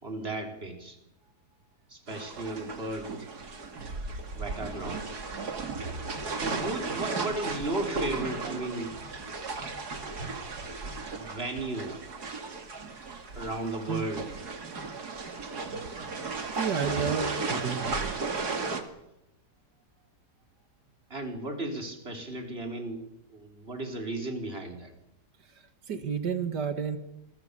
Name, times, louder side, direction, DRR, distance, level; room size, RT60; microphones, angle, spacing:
voice 1, 0.0-1.0 1.9-3.1 4.4-5.1 6.4-8.9 11.1-12.3 13.3-14.3 15.3-15.5 21.1-24.9, right 2 dB, 35° right, 4 dB, 4.4 m, -35 dB
sound 1, 2.1-18.8, right 4 dB, 70° right, 3.0 m, -35 dB
voice 2, 16.5-18.2 25.9-27.0, right 7 dB, 90° right, 8 dB, 2.4 m, -31 dB
27.5 x 22.5 x 6.9 m, 0.87 s
omnidirectional pair, 1.7 m